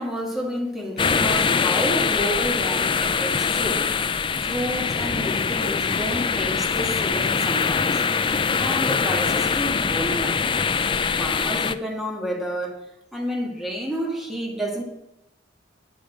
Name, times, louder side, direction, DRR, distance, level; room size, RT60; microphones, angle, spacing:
voice 1, 0.0-3.9 4.4-8.0 8.6-10.4 11.2-14.8, equal, ahead, 1.7 m, -30 dB
sound 1, 1.0-11.7, left 5 dB, 25° left, 0.4 m, -23 dB
8.5 x 8.4 x 4.9 m
head